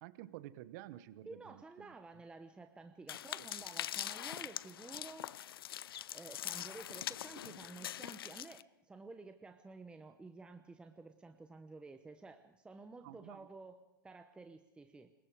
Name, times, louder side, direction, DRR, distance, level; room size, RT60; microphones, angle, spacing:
voice 1, 0.0-1.9 3.4-3.5 13.0-13.5, right 14 dB, 50° right, 15 dB, 1.3 m, -51 dB
voice 2, 1.3-5.4 6.1-15.1, right 3 dB, 10° right, 7 dB, 1.0 m, -52 dB
sound 1, 3.1-8.6, left 11 dB, 80° left, 0.6 m, -43 dB
26.5 x 22.0 x 5.0 m, 0.97 s
hypercardioid pair, 135°, 12 cm